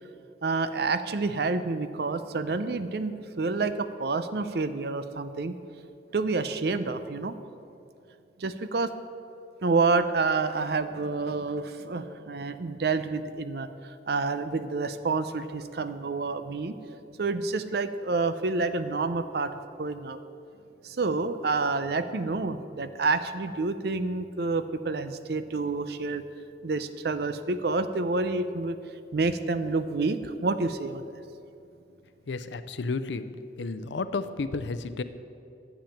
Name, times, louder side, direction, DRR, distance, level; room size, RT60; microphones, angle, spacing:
voice 1, 0.4-5.5 6.1-7.4 8.4-8.9 9.6-16.8 17.2-20.2 20.8-26.2 26.6-28.8 29.1-31.1, right 3 dB, 60° right, 11 dB, 0.6 m, -28 dB
voice 2, 32.3-33.3 33.6-35.0, left 3 dB, 90° left, 11 dB, 0.6 m, -32 dB
10.5 x 7.1 x 7.2 m, 2.6 s
head